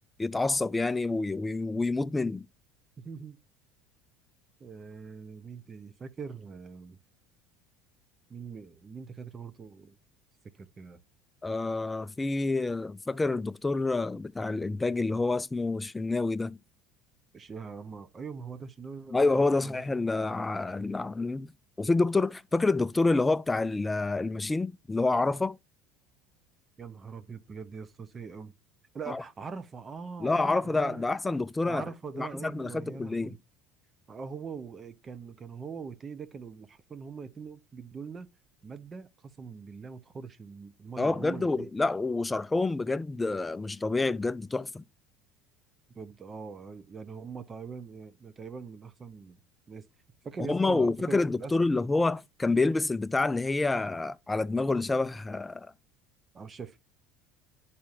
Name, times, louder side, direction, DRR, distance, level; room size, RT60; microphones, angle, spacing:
voice 1, 0.2-2.5 11.4-16.6 19.1-21.5 21.8-25.6 29.1-29.2 30.2-31.8 32.2-33.4 41.0-44.8 50.4-55.7, left 3 dB, 15° left, 0.3 m, -28 dB
voice 2, 3.0-3.4 4.6-7.0 8.3-10.0 10.5-11.0 17.3-19.8 26.8-28.5 28.9-31.0 31.7-33.4 34.1-38.3 38.6-41.7 45.9-49.4 49.7-49.8 50.2-51.5 56.3-56.8, right 5 dB, 30° right, 0.7 m, -42 dB
10.5 x 4.2 x 2.5 m
hypercardioid pair, 85°, 0 cm